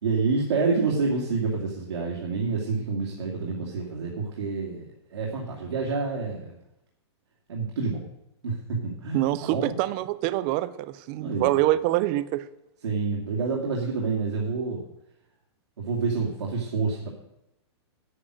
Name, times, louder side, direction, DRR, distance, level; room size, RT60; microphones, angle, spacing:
voice 1, 0.0-6.6 7.5-8.1 8.4-9.8 11.2-11.5 12.8-14.8 15.8-17.1, right 4 dB, 85° right, 2.7 m, -28 dB
voice 2, 9.1-12.4, right 16 dB, 20° right, 0.4 m, -25 dB
9.9 x 9.6 x 6.3 m
hypercardioid pair, 175°, 14 cm